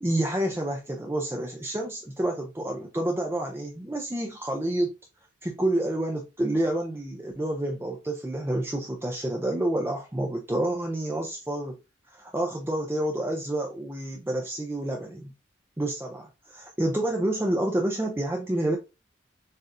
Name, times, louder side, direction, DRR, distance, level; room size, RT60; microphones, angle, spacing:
voice 1, 0.0-4.9 5.4-11.8 12.1-15.3 15.8-18.8, right 1 dB, 10° right, 0.4 m, -29 dB
6.6 x 2.4 x 2.5 m
head